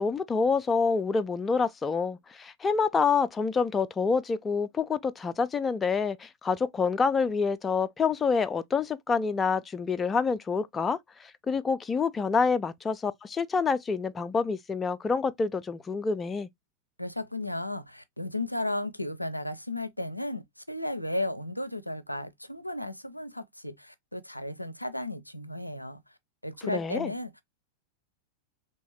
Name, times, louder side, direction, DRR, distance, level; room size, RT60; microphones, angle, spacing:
voice 1, 0.0-16.5 26.7-27.1, left 5 dB, 15° left, 0.3 m, -27 dB
voice 2, 17.0-26.0 26.4-27.4, left 1 dB, 90° left, 0.4 m, -34 dB
3.4 x 2.8 x 3.0 m
figure-of-eight pair, 90°, 0 cm